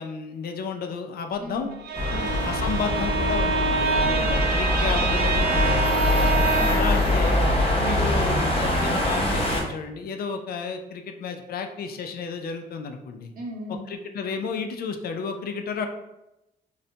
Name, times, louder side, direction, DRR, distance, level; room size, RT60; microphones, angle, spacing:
voice 1, 0.0-1.7 2.4-5.8 6.1-6.3 6.7-7.4 7.8-13.3 13.9-15.9, left 5 dB, 60° left, 5 dB, 0.4 m, -32 dB
voice 2, 1.4-1.7 2.1-2.4 4.0-4.3 6.4-6.8 13.4-13.9, equal, 55° right, 0 dB, 0.8 m, -36 dB
Bowed string instrument, 1.7-7.1, right 4 dB, 70° right, 0.4 m, -26 dB
sound 1, 1.9-9.6, left 1 dB, 35° left, 0.8 m, -23 dB
4.0 x 2.1 x 2.7 m, 0.92 s
cardioid pair, 100°, 18 cm